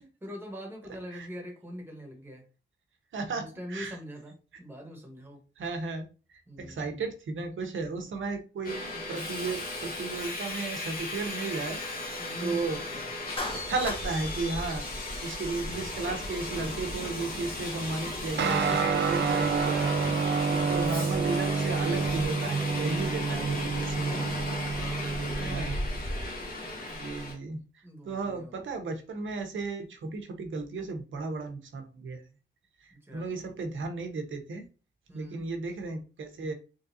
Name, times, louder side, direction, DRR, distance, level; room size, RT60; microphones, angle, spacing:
voice 1, 0.0-2.4 3.3-5.4 6.5-7.0 12.1-13.1 24.5-25.8 27.8-28.6 32.9-33.5 35.1-35.5, equal, 10° right, 1 dB, 1.2 m, -44 dB
voice 2, 3.1-4.0 5.6-11.8 12.4-12.8 13.6-14.8 15.2-20.0 20.5-24.2 25.4-25.8 26.9-27.6 28.0-32.2 32.8-34.7 35.1-36.5, right 3 dB, 90° right, 5 dB, 0.9 m, -34 dB
Subway metro underground, 8.6-27.3, left 1 dB, 45° left, 1.3 m, -35 dB
Clapping, 13.4-14.1, left 2 dB, 30° left, 0.8 m, -35 dB
Guitar, 18.4-26.1, right 5 dB, 65° right, 0.5 m, -29 dB
3.8 x 3.3 x 2.7 m, 0.34 s
wide cardioid pair, 145°, 20 cm